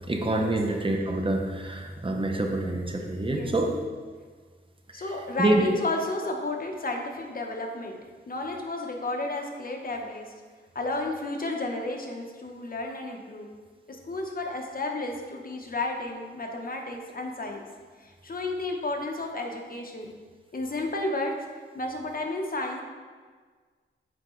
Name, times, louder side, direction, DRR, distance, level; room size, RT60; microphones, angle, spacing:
voice 1, 0.1-3.7 5.4-5.6, right 2 dB, 25° right, 2 dB, 0.7 m, -26 dB
voice 2, 4.9-8.0 8.3-10.3 10.7-13.5 13.9-17.6 18.0-20.1 20.5-21.3 21.7-22.8, left 2 dB, 45° left, 2 dB, 0.9 m, -32 dB
8.1 x 4.8 x 3.1 m, 1.5 s
wide cardioid pair, 85°, 21 cm